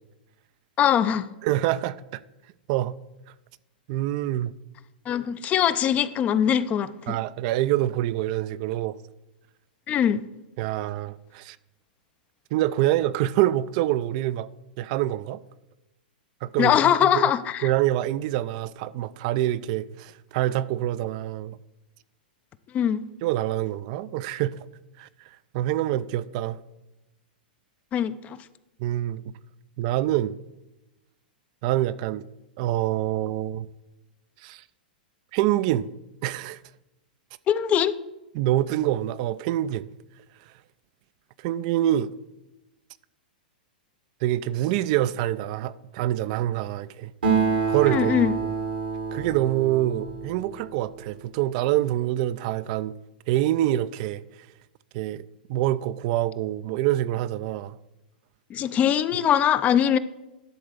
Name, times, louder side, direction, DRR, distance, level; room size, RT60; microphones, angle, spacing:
voice 1, 0.8-1.3 5.1-7.2 9.9-10.3 16.6-17.7 22.7-23.0 27.9-28.4 37.5-37.9 47.9-48.3 58.5-60.0, left 9 dB, 30° left, 0.5 m, -22 dB
voice 2, 1.4-2.2 2.7-3.0 3.9-4.5 7.1-9.0 10.6-11.6 12.5-14.5 14.8-15.4 16.4-17.3 17.6-21.6 23.2-24.7 25.0-26.6 28.8-29.2 29.8-30.4 31.6-32.3 32.6-33.7 34.4-34.6 35.3-35.9 36.2-36.6 38.3-39.9 41.4-42.1 44.2-47.1 47.7-48.2 49.1-52.9 53.3-54.2 54.9-55.2 55.5-57.8, right 14 dB, 50° right, 0.4 m, -26 dB
Acoustic guitar, 47.2-51.0, right 5 dB, 90° right, 2.0 m, -27 dB
11.0 x 3.9 x 6.6 m
hypercardioid pair, 125°, 5 cm